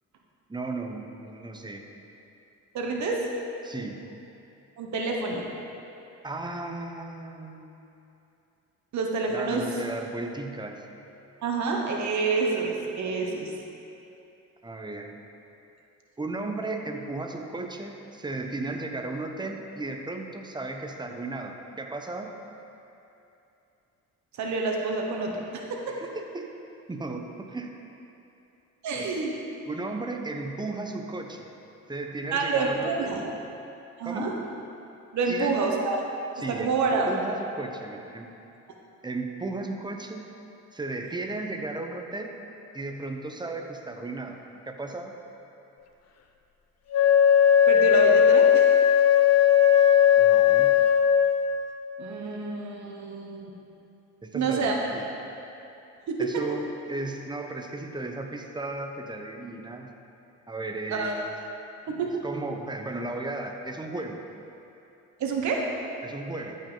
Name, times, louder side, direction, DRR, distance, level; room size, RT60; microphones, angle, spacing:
voice 1, 0.5-1.9 3.6-4.1 6.2-7.7 9.3-10.8 14.6-15.2 16.2-22.3 25.9-26.6 26.9-27.8 28.9-29.1 29.7-31.5 31.9-33.2 34.0-34.3 35.3-35.6 36.4-36.7 37.0-38.3 39.0-40.3 40.7-42.3 42.7-44.4 44.7-45.1 50.2-50.8 54.2-55.3 56.2-59.9 60.5-61.3 62.2-64.2 66.0-66.5, right 2 dB, 15° right, 3 dB, 0.9 m, -35 dB
voice 2, 2.7-3.2 4.8-5.4 8.9-9.6 11.4-13.5 24.4-25.9 28.8-29.3 32.3-33.3 34.0-34.3 35.1-36.0 36.5-37.2 47.7-48.6 52.0-53.5 54.3-54.8 56.1-56.4 60.9-61.1 61.9-62.1 65.2-65.6, right 4 dB, 65° right, 0 dB, 1.2 m, -28 dB
Wind instrument woodwind instrument, 46.9-51.6, left 9 dB, 60° left, 0.7 m, -18 dB
14.0 x 5.4 x 3.9 m, 2.8 s
cardioid pair, 90°, 30 cm